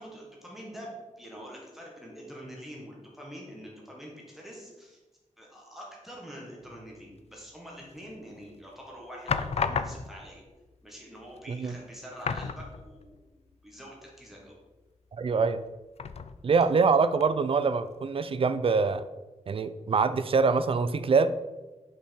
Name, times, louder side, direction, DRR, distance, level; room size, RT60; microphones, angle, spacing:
voice 1, 0.0-5.0 5.4-10.4 10.8-13.2 13.6-14.6, equal, ahead, -3 dB, 1.5 m, -45 dB
sound 1, 8.0-8.5 9.3-10.3 11.3-11.4 11.7-11.8 12.2-13.2 13.5-13.6 16.0-16.7 17.2-17.3, left 5 dB, 55° left, 0.4 m, -32 dB
voice 2, 15.2-15.6 16.4-19.0 19.5-21.3, right 4 dB, 45° right, 12 dB, 0.4 m, -24 dB
5.6 x 4.9 x 4.4 m, 1.1 s
wide cardioid pair, 115°, 13 cm